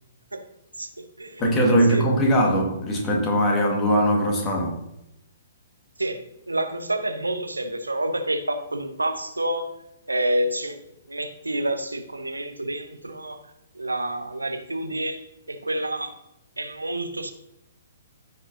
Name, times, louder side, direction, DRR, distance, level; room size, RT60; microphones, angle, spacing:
voice 1, 0.8-1.6 1.9-2.0 6.0-9.8 10.1-13.4 13.7-16.2 16.6-17.3, right 1 dB, 80° right, 6 dB, 0.9 m, -28 dB
voice 2, 1.4-4.7, equal, 20° left, 0 dB, 1.9 m, -20 dB
14.5 x 5.2 x 2.8 m, 0.84 s
figure-of-eight pair, 120°, 0 cm